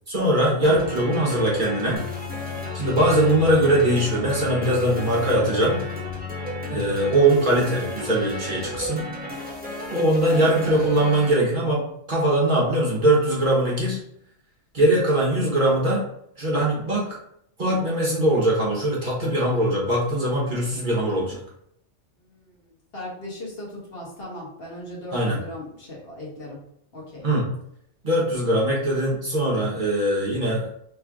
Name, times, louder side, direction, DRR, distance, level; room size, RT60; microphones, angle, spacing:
voice 1, 0.1-2.0 2.7-5.8 6.7-9.0 9.9-14.0 14.7-16.0 16.4-17.2 17.6-21.4 25.1-25.4 27.2-27.4 28.0-30.6, right 1 dB, 45° right, -4 dB, 1.2 m, -21 dB
sound 1, 0.6-11.3, equal, 10° right, 0.7 m, -34 dB
sound 2, 1.9-6.9, left 10 dB, 75° left, 1.1 m, -36 dB
voice 2, 10.3-10.9 22.2-26.6 26.9-27.3, left 1 dB, 55° left, -4 dB, 1.4 m, -38 dB
3.5 x 3.2 x 3.6 m, 0.71 s
omnidirectional pair, 1.2 m